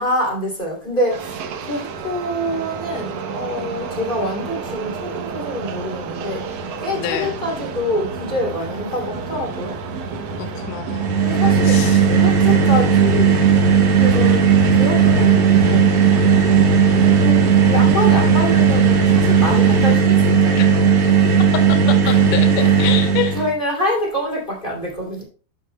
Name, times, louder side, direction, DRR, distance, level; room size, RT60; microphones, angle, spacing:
voice 1, 0.0-6.5 6.8-9.8 11.2-13.5 14.0-15.9 17.1-20.9 22.0-22.9 23.3-25.2, left 1 dB, 15° left, 2.3 m, -26 dB
sound 1, 1.1-20.0, right 5 dB, 85° right, 1.4 m, -28 dB
voice 2, 7.0-7.3 10.5-11.2 11.7-12.0 20.6-20.7 22.2-23.4, left 10 dB, 70° left, 2.4 m, -26 dB
sound 2, 10.9-23.5, right 6 dB, 60° right, 1.5 m, -15 dB
13.0 x 6.4 x 2.2 m
omnidirectional pair, 4.2 m